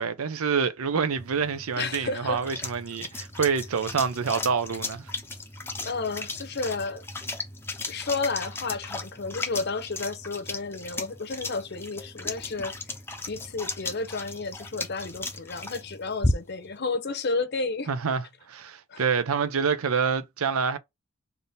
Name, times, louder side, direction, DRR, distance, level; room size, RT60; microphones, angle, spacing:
voice 1, 0.0-5.1 17.9-20.8, right 6 dB, 80° right, 0.6 m, -27 dB
sound 1, 1.2-16.7, left 2 dB, 10° left, 0.6 m, -35 dB
voice 2, 1.8-2.4 5.8-7.0 7.9-12.7 13.3-17.9 18.9-19.0, left 3 dB, 50° left, 0.7 m, -31 dB
3.5 x 2.7 x 4.1 m
head